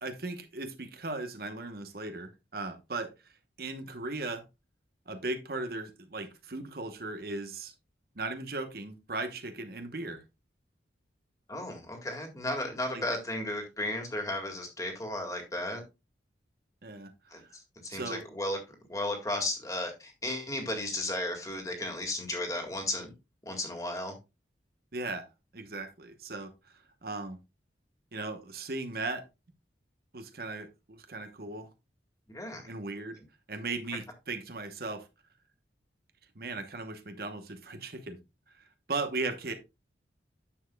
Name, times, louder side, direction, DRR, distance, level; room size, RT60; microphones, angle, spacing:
voice 1, 0.0-3.1 3.6-4.4 5.1-7.7 8.2-10.2 12.9-13.0 16.8-17.4 17.9-18.2 24.9-25.3 25.5-26.7 27.0-27.4 28.1-29.2 30.1-31.7 32.6-33.2 33.5-35.1 36.3-38.2 38.5-39.5, right 3 dB, 55° right, 1.0 m, -37 dB
voice 2, 11.5-15.8 17.3-17.4 17.8-18.6 18.9-23.1 23.5-24.1 32.3-32.7, left 1 dB, 20° left, 1.9 m, -34 dB
9.9 x 7.2 x 2.3 m
head